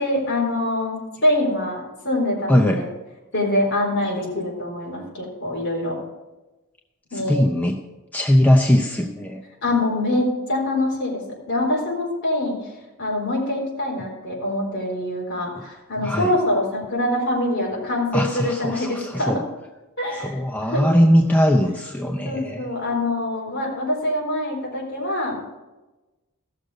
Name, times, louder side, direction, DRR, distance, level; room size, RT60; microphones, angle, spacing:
voice 1, 0.0-2.9 3.3-6.0 7.1-7.4 9.6-11.2 11.5-12.5 13.0-19.5 20.0-20.4 20.7-20.8 22.2-25.4, left 1 dB, 55° left, -3 dB, 4.1 m, -24 dB
voice 2, 2.5-2.9 7.3-7.8 8.1-9.4 16.0-16.3 18.1-19.4 20.1-22.7, equal, 5° left, 2 dB, 0.5 m, -20 dB
15.5 x 6.6 x 5.1 m, 1.1 s
head